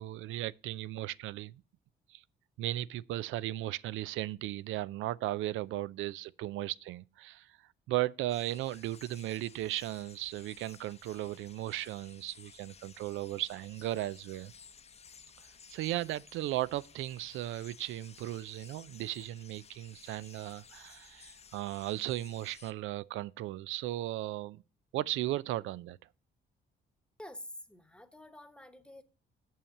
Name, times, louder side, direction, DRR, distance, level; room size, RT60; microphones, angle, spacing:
voice 1, 0.0-1.6 2.1-2.2 2.6-7.6 7.9-14.5 15.7-24.6 24.9-26.0, right 15 dB, 85° right, 0.4 m, -36 dB
sound 1, 8.3-22.7, left 6 dB, 35° left, 0.6 m, -56 dB
voice 2, 27.2-29.0, left 1 dB, 5° left, 1.0 m, -48 dB
7.2 x 5.6 x 6.5 m
cardioid pair, 90°, 20 cm